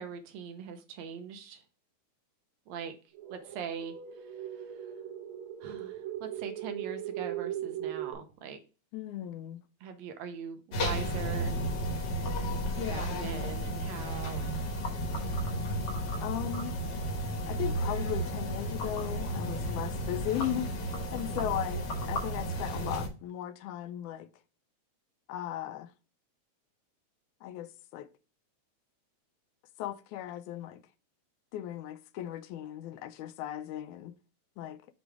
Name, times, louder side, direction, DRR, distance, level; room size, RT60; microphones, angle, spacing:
voice 1, 0.0-1.6 2.7-3.0 3.3-4.9 5.6-8.6 9.8-11.6 12.9-15.0, right 7 dB, 75° right, 1.9 m, -42 dB
sound 1, 3.1-8.1, right 11 dB, 50° right, 2.0 m, -39 dB
voice 2, 8.9-9.6 12.8-13.5 16.2-16.8 17.5-24.3 25.3-25.9 27.4-28.1 29.8-30.8 31.5-34.2 34.6-34.8, left 11 dB, 85° left, 2.0 m, -37 dB
sound 2, 10.7-23.1, right 1 dB, 55° left, 1.3 m, -33 dB
6.7 x 3.0 x 4.7 m
omnidirectional pair, 3.4 m